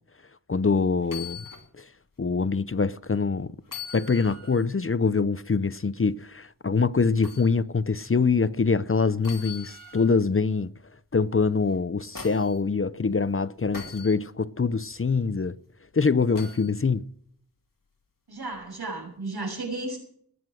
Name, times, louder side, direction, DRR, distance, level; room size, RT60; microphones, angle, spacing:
voice 1, 0.5-1.4 1.8-1.9 2.2-3.5 3.9-10.7 11.1-15.6 15.9-17.0, left 4 dB, 35° left, 0.6 m, -24 dB
sound 1, 1.0-1.7 2.1-2.2 3.6-4.7 7.2-7.5 9.2-10.2 11.7-12.6 13.7-14.2 16.3-16.7 18.5-18.6, left 5 dB, 60° left, 2.7 m, -41 dB
voice 2, 18.3-20.0, right 2 dB, 80° right, 7.1 m, -33 dB
20.0 x 9.6 x 6.3 m
wide cardioid pair, 65°, 38 cm